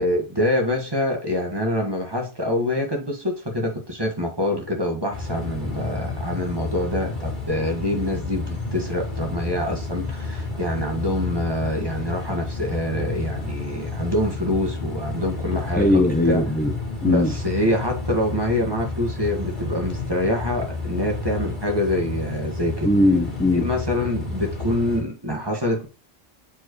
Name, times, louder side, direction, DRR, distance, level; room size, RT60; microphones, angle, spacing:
voice 1, 0.0-16.4 17.0-22.9 23.5-25.9, left 1 dB, 20° right, 1.6 m, -25 dB
sound 1, 5.1-25.0, left 3 dB, 45° left, 2.3 m, -31 dB
voice 2, 15.7-16.7 17.0-17.3 22.8-23.7, left 1 dB, 10° left, 0.6 m, -19 dB
7.5 x 4.7 x 3.1 m
omnidirectional pair, 1.2 m